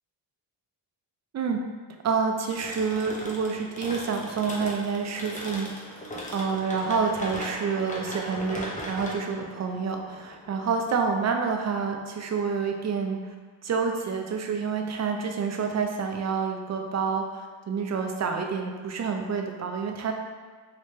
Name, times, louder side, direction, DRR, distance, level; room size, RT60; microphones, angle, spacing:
voice 1, 2.0-5.7 6.0-13.2 13.6-20.1, right 5 dB, 35° right, 3 dB, 0.4 m, -28 dB
sound 1, 2.5-11.2, equal, 15° left, 0.6 m, -38 dB
3.1 x 2.8 x 3.2 m, 1.5 s
cardioid pair, 100°, 48 cm